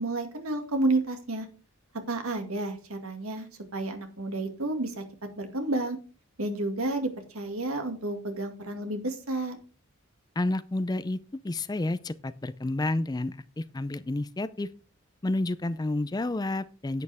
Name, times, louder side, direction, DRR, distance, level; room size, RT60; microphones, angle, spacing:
voice 1, 0.0-1.5 2.1-5.0 5.4-6.0 6.4-9.6, right 2 dB, 80° right, 6 dB, 2.1 m, -31 dB
voice 2, 10.4-11.2 11.4-14.7 15.2-17.0, left 2 dB, 20° left, 14 dB, 0.4 m, -30 dB
11.0 x 8.7 x 3.5 m, 0.35 s
head